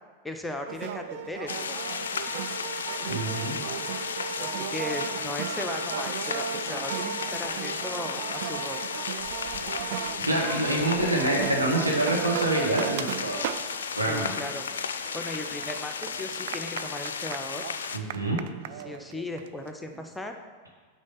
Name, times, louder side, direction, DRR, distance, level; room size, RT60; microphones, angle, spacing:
voice 1, 0.2-1.6 4.3-8.8 14.1-14.6 15.1-17.7 18.8-20.4, left 2 dB, 5° left, 4 dB, 0.6 m, -37 dB
sound 1, 0.7-14.0 14.4-20.1, right 9 dB, 50° right, 0.3 m, -36 dB
sound 2, 1.5-18.0, left 6 dB, 65° left, 0.4 m, -34 dB
voice 2, 3.1-3.6 10.2-13.4 13.9-14.3 17.9-18.4, right 1 dB, 80° right, -1 dB, 1.4 m, -26 dB
6.3 x 5.0 x 5.7 m, 1.5 s
figure-of-eight pair, 90°, 0 cm